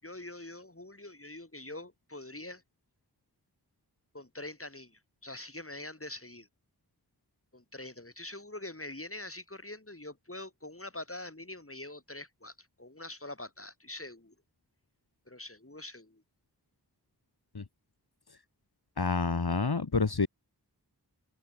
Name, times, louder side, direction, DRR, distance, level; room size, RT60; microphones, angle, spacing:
voice 1, 0.0-2.6 4.1-6.5 7.5-14.3 15.3-16.2, left 2 dB, 35° left, 7.4 m, -44 dB
voice 2, 19.0-20.3, left 4 dB, 70° left, 2.4 m, -28 dB
open air
wide cardioid pair, 45°, 39 cm